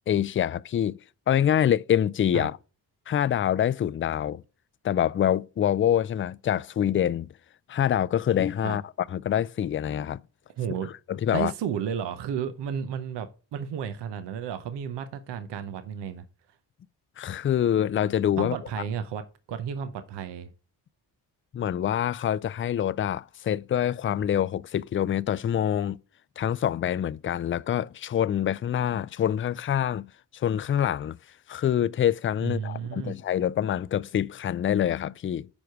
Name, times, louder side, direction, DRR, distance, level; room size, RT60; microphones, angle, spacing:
voice 1, 0.1-1.0 1.3-2.6 3.1-4.4 4.8-7.3 7.7-8.8 9.1-10.2 11.1-11.5 17.2-18.6 21.5-26.0 26.4-31.2 31.5-35.5, left 10 dB, 30° left, 0.4 m, -25 dB
voice 2, 10.6-10.9 11.3-16.2 18.4-20.5 32.4-33.2, right 8 dB, 80° right, 0.8 m, -33 dB
7.0 x 4.9 x 4.5 m
supercardioid pair, 55°, 41 cm